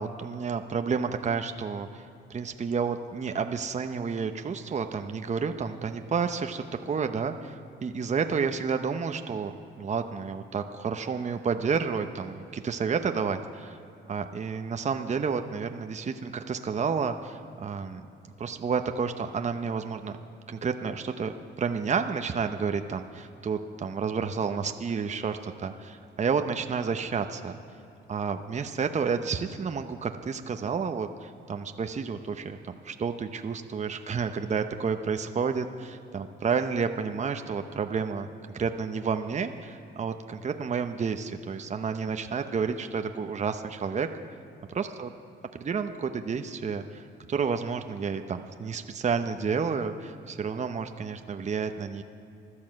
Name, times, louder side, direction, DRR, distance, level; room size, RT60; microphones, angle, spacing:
voice 1, 0.0-13.8 14.1-18.0 18.4-20.2 20.5-27.6 28.1-32.6 32.8-38.3 38.5-44.1 44.7-45.1 45.5-47.0 47.3-52.0, right 5 dB, 35° right, 7 dB, 0.8 m, -30 dB
15.5 x 11.5 x 7.6 m, 2.8 s
cardioid pair, 90°, 20 cm